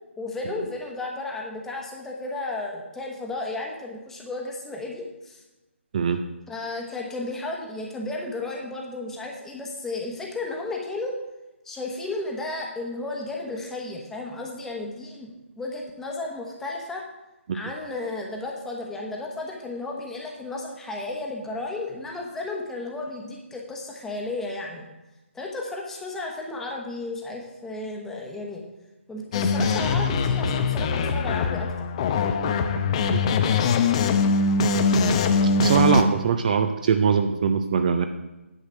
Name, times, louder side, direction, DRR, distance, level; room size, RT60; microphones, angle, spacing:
voice 1, 0.2-5.4 6.5-11.2 11.6-17.0 17.5-24.9 25.3-28.6 29.1-31.9, left 2 dB, 5° left, 0 dB, 1.1 m, -33 dB
sound 1, 29.3-36.0, left 4 dB, 25° left, 0.6 m, -22 dB
voice 2, 35.6-38.1, right 6 dB, 35° right, 7 dB, 0.6 m, -22 dB
9.9 x 6.4 x 6.2 m, 1.0 s
figure-of-eight pair, 145°, 7 cm